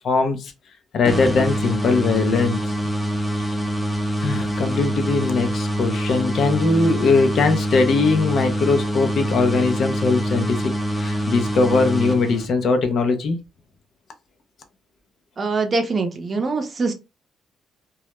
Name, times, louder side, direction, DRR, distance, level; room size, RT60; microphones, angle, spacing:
voice 1, 0.0-0.5 0.9-2.6 3.4-3.5 4.2-13.4, left 4 dB, 60° left, 0.6 m, -20 dB
sound 1, 1.0-12.8, equal, 20° left, 0.6 m, -25 dB
voice 2, 15.4-16.9, right 3 dB, 35° right, 0.6 m, -23 dB
2.3 x 2.0 x 2.9 m
cardioid pair, 90°, 0 cm